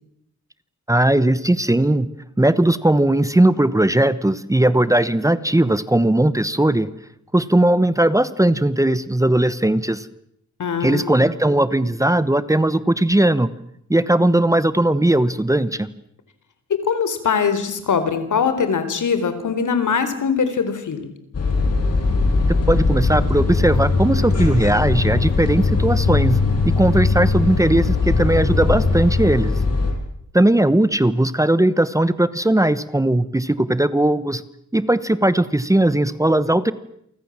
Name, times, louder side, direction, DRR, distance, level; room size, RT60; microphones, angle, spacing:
voice 1, 0.9-2.1 2.4-6.9 7.3-10.1 10.8-13.5 13.9-15.9 22.7-26.4 26.6-29.5 30.3-34.4 34.7-36.7, right 1 dB, 10° right, 15 dB, 1.1 m, -18 dB
voice 2, 10.6-11.1 16.7-21.1, left 6 dB, 85° left, 11 dB, 4.1 m, -22 dB
sound 1, 21.3-29.9, left 3 dB, 55° left, 7.1 m, -19 dB
29.5 x 24.5 x 7.4 m, 0.74 s
wide cardioid pair, 145°, 30 cm